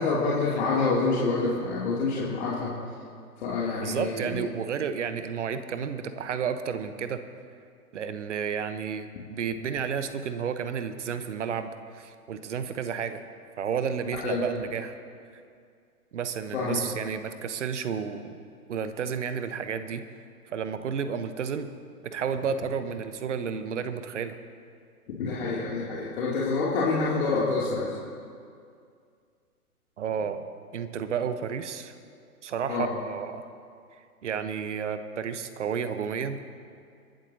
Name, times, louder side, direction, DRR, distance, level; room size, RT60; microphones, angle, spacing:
voice 1, 0.0-2.7 3.4-4.2 14.2-14.4 16.5-16.8 25.2-27.9 32.7-32.9, left 3 dB, 45° left, -6 dB, 2.8 m, -27 dB
voice 2, 3.8-7.2 7.9-13.2 13.6-14.9 16.1-18.4 18.7-20.0 20.5-21.7 22.0-24.4 30.0-30.5 30.7-31.9 32.4-33.4 34.2-36.4, right 7 dB, 50° right, 10 dB, 1.1 m, -31 dB
26.5 x 12.0 x 2.8 m, 2.3 s
figure-of-eight pair, 125°, 46 cm